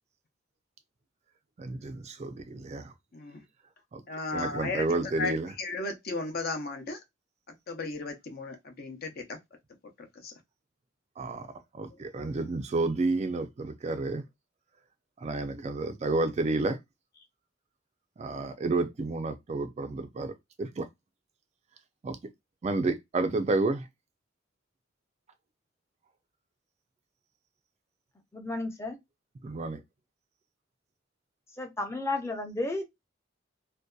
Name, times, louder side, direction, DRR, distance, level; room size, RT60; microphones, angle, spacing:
voice 1, 1.6-2.9 3.9-4.0 4.3-5.5 11.2-11.5 11.7-14.2 15.2-16.8 18.2-20.3 20.6-20.9 22.0-22.2 22.6-23.9 29.4-29.8, right 3 dB, 35° right, 0.4 m, -30 dB
voice 2, 4.1-7.0 7.7-9.4 10.0-10.3, left 3 dB, 55° left, 0.6 m, -35 dB
voice 3, 28.3-29.0 31.6-32.8, left 2 dB, 15° left, 0.6 m, -32 dB
2.6 x 2.2 x 2.2 m
head